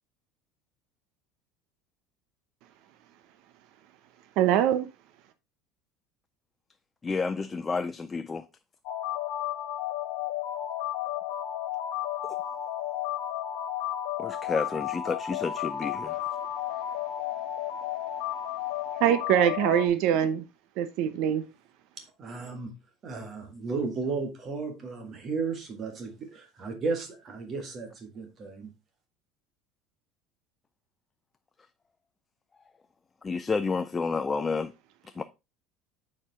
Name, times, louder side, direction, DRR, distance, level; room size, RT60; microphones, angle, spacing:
voice 1, 4.4-4.9 19.0-20.4 20.8-21.4, right 10 dB, 50° right, 0.8 m, -23 dB
voice 2, 7.0-8.4 14.2-16.2 33.2-34.7 35.2-35.3, left 4 dB, 15° left, 0.3 m, -30 dB
sound 1, 8.8-19.9, left 12 dB, 70° left, 1.5 m, -33 dB
voice 3, 22.2-22.7 23.0-28.7, right 4 dB, 25° right, 1.7 m, -34 dB
8.7 x 5.0 x 3.5 m
cardioid pair, 180°, 0 cm